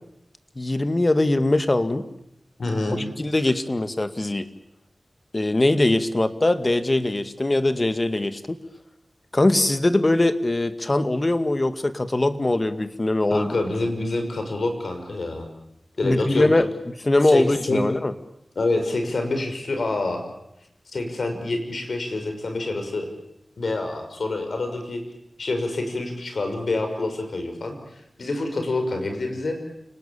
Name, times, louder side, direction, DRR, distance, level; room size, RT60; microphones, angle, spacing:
voice 1, 0.6-2.0 3.2-4.5 5.3-8.4 9.3-13.5 16.0-16.7 17.0-18.1, left 2 dB, 35° left, 10 dB, 2.1 m, -21 dB
voice 2, 2.6-3.1 13.3-15.5 16.0-16.6 17.2-17.8 18.6-20.2 20.9-23.1 23.6-25.0 25.4-29.6, left 2 dB, 75° left, 5 dB, 5.8 m, -27 dB
29.0 x 19.5 x 8.7 m, 0.81 s
cardioid pair, 50°, 0 cm